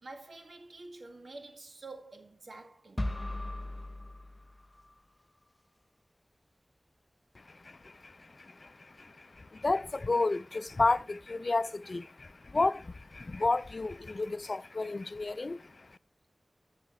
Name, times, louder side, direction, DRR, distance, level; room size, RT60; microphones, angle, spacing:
voice 1, 0.0-3.0, right 2 dB, 90° right, 2.0 m, -48 dB
sound 1, 3.0-5.0, left 1 dB, 25° left, 0.7 m, -38 dB
voice 2, 7.5-16.0, left 3 dB, 65° left, 0.5 m, -32 dB
14.5 x 6.7 x 3.1 m
wide cardioid pair, 50°, 0 cm